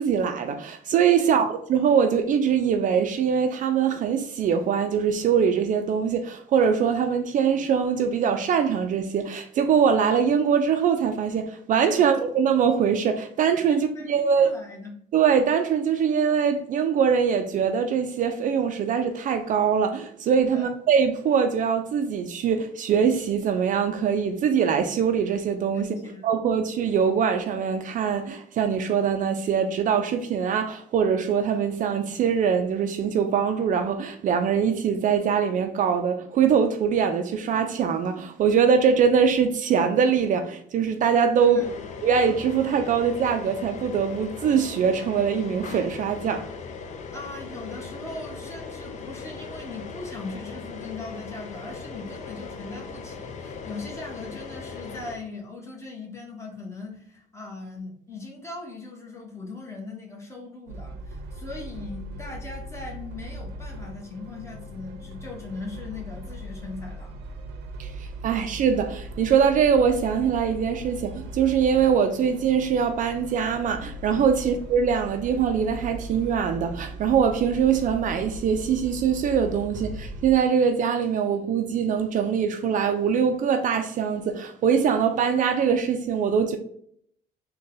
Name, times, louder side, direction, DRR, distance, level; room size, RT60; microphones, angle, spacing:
voice 1, 0.0-14.5 15.1-25.9 26.2-41.6 42.0-46.4 67.8-86.6, right 7 dB, 50° right, 0.4 m, -23 dB
voice 2, 13.7-14.9 20.5-20.7 25.7-26.3 41.4-41.9 47.1-67.1 74.3-74.5, left 3 dB, 15° left, 1.2 m, -39 dB
sound 1, 41.6-55.2, left 5 dB, 45° left, 0.5 m, -38 dB
sound 2, 60.7-80.3, right 1 dB, 85° right, 0.6 m, -39 dB
3.8 x 2.3 x 3.8 m
cardioid pair, 110°, 17 cm